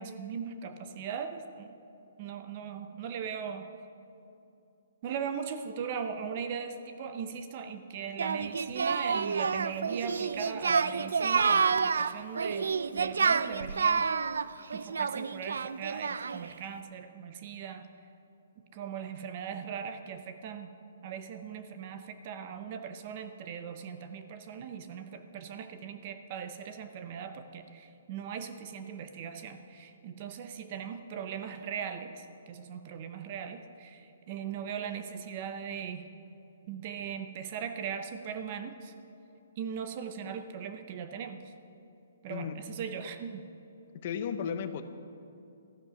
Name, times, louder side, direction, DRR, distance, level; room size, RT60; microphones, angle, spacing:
voice 1, 0.0-1.7 2.2-3.7 5.0-14.1 14.7-17.9 18.7-20.7 21.0-36.1 36.7-38.9 39.6-41.5 42.2-43.4, right 7 dB, 25° right, 8 dB, 0.6 m, -39 dB
Singing, 8.2-16.5, right 5 dB, 85° right, 0.4 m, -29 dB
voice 2, 43.9-44.8, left 7 dB, 30° left, 9 dB, 0.7 m, -34 dB
13.5 x 10.5 x 6.8 m, 2.7 s
hypercardioid pair, 180°, 0 cm